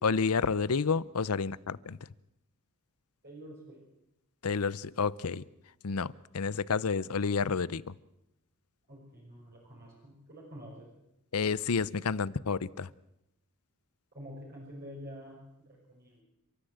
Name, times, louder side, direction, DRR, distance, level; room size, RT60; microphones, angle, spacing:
voice 1, 0.0-2.0 4.4-5.4 5.8-7.9 11.3-12.9, left 5 dB, 90° left, 20 dB, 0.7 m, -30 dB
voice 2, 3.2-3.8 8.9-10.9 14.1-16.2, equal, 45° right, -3 dB, 5.8 m, -48 dB
30.0 x 13.5 x 8.0 m, 0.87 s
head